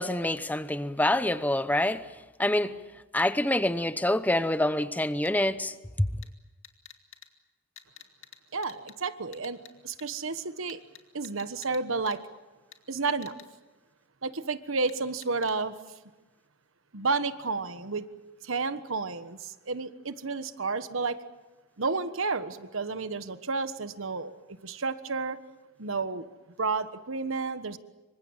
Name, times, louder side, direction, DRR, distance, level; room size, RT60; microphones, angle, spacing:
voice 1, 0.0-2.1 2.4-2.8 3.1-6.1, left 1 dB, 10° left, 0.8 m, -26 dB
sound 1, 5.2-5.3 6.2-6.3 6.6-7.3 7.8-8.4 8.6-8.9 9.3-9.7 10.0-10.1 10.7-11.8 12.1-12.2 12.7-12.8 13.2-13.4 14.9-15.0 15.2-15.5, left 10 dB, 65° left, 2.3 m, -48 dB
voice 2, 8.5-10.8 11.1-12.2 12.9-13.3 14.2-15.8 16.9-18.1 18.4-21.2 21.8-24.3 24.6-25.4 25.8-26.3 26.6-27.8, right 4 dB, 75° right, 1.3 m, -31 dB
27.0 x 24.5 x 7.4 m
head